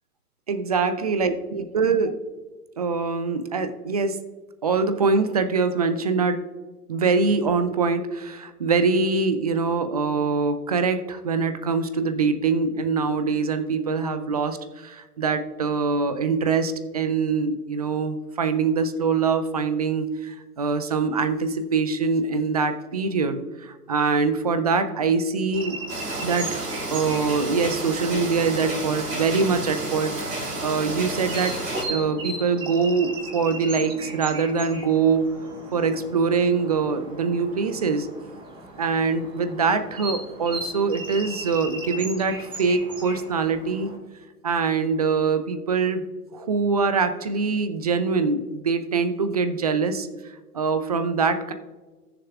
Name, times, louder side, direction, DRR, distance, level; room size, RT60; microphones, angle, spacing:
voice 1, 0.5-2.2 2.8-4.2 4.6-6.4 6.9-25.8 26.2-31.6 31.9-35.3 35.7-38.1 38.8-43.9 44.4-46.0 46.3-50.1 50.5-51.5, right 4 dB, 30° right, 10 dB, 0.4 m, -24 dB
sound 1, 25.5-44.0, right 2 dB, 10° right, 1.2 m, -38 dB
sound 2, 25.9-31.8, right 1 dB, 80° right, 3.3 m, -31 dB
18.5 x 6.8 x 2.3 m, 1.3 s
figure-of-eight pair, 120°, 46 cm